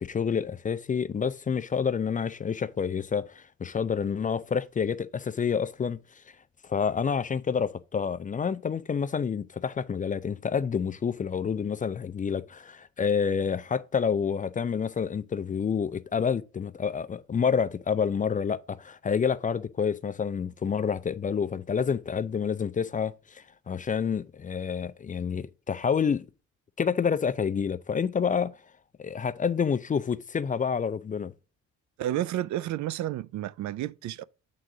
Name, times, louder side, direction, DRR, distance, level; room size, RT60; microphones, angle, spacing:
voice 1, 0.0-6.0 6.7-26.3 26.8-28.5 29.0-31.3, left 6 dB, 25° left, 0.4 m, -28 dB
voice 2, 32.0-34.2, right 13 dB, 70° right, 0.4 m, -31 dB
7.7 x 3.8 x 4.7 m
cardioid pair, 90°, 30 cm